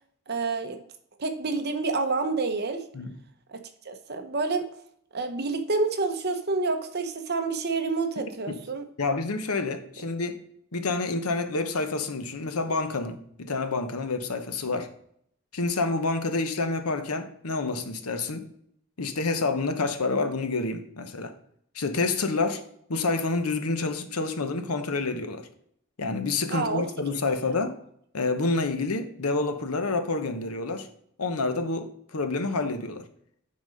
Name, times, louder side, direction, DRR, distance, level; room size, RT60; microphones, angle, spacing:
voice 1, 0.3-0.8 1.2-2.8 3.5-4.6 5.1-8.9 26.5-26.9 27.3-27.4, right 3 dB, 45° right, 0.9 m, -28 dB
voice 2, 9.0-10.4 10.7-14.9 15.5-18.5 19.0-21.3 21.7-22.6 22.9-25.5 26.0-27.8 28.1-30.9 31.2-33.1, left 3 dB, 90° left, 1.0 m, -28 dB
9.6 x 4.1 x 5.2 m
head